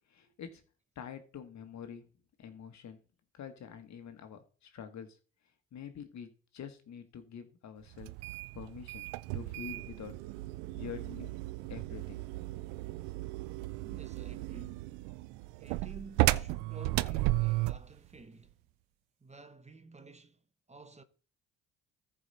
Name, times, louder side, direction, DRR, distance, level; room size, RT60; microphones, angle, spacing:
voice 1, 0.1-0.6 0.9-2.1 2.4-3.0 3.3-5.2 5.7-8.1 8.5-10.2 10.7-11.4 11.7-12.3, left 7 dB, 60° left, 1.5 m, -46 dB
sound 1, 8.0-17.9, right 19 dB, 85° right, 0.5 m, -34 dB
voice 2, 13.8-14.9 15.6-18.6 19.2-21.0, right 3 dB, 20° right, 1.1 m, -52 dB
14.0 x 4.9 x 4.2 m
hypercardioid pair, 55°, 32 cm